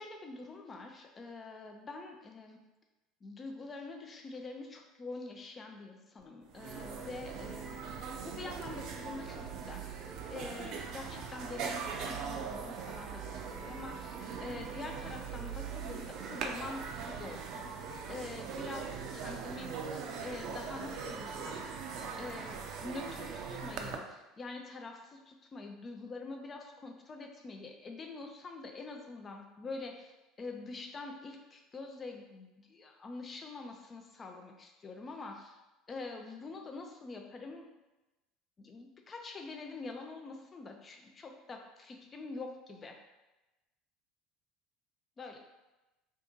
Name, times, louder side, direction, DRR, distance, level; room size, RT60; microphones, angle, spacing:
voice 1, 0.0-2.6 3.2-9.9 10.3-21.6 22.2-35.6 35.9-37.7 38.6-43.0 45.2-45.4, left 3 dB, 30° left, 3 dB, 0.4 m, -45 dB
sound 1, 6.2-6.3 6.5-24.0, right 6 dB, 60° right, 0.4 m, -41 dB
2.6 x 2.5 x 3.7 m, 1.0 s
hypercardioid pair, 70°, 0 cm